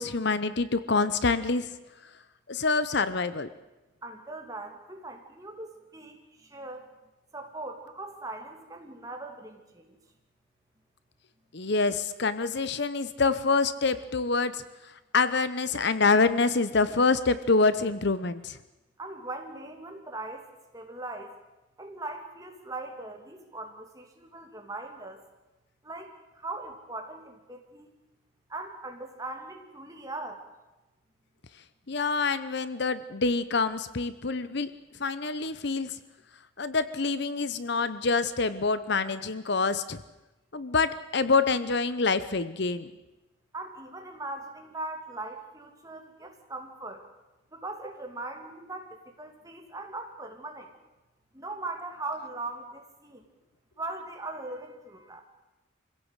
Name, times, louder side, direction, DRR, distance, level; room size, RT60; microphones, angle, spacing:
voice 1, 0.0-1.7 2.5-3.5 11.5-14.6 15.1-18.6 31.9-34.7 35.0-36.0 36.6-40.0 40.5-42.9, left 4 dB, 55° left, 13 dB, 0.8 m, -26 dB
voice 2, 4.0-6.8 7.3-9.9 19.0-20.5 20.7-21.3 21.8-25.2 25.8-27.9 28.5-30.4 43.5-47.0 47.5-50.7 51.3-53.2 53.8-55.2, right 2 dB, 15° right, 3 dB, 2.7 m, -40 dB
25.0 x 16.5 x 8.2 m, 1.0 s
head